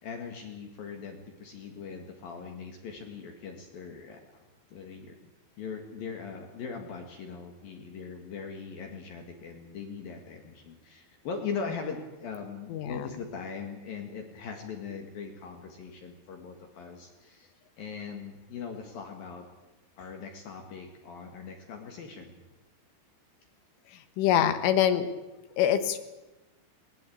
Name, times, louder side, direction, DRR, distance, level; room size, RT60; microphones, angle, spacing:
voice 1, 0.0-4.4 4.7-5.2 5.6-19.5 20.0-22.4, left 5 dB, 55° left, 4 dB, 3.1 m, -40 dB
voice 2, 12.7-13.1 24.2-25.1 25.6-26.0, left 10 dB, 85° left, 9 dB, 4.0 m, -24 dB
20.5 x 19.0 x 8.6 m, 1.1 s
omnidirectional pair, 5.5 m